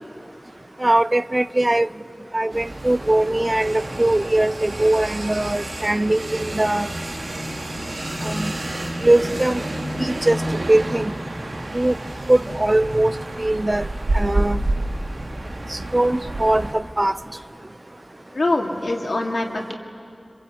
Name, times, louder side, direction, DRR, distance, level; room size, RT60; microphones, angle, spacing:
voice 1, 0.8-1.9 2.3-6.9 8.2-8.5 9.0-9.6 10.0-10.4 10.7-11.1 11.7-11.9 12.3-13.9 14.1-14.6 15.7-17.1, right 1 dB, 35° right, 15 dB, 0.5 m, -20 dB
sound 1, 2.5-16.7, right 1 dB, 80° right, 1.9 m, -29 dB
voice 2, 18.3-19.8, left 2 dB, 85° left, 1 dB, 2.2 m, -24 dB
25.5 x 22.0 x 8.3 m, 2.5 s
wide cardioid pair, 45°, 0 cm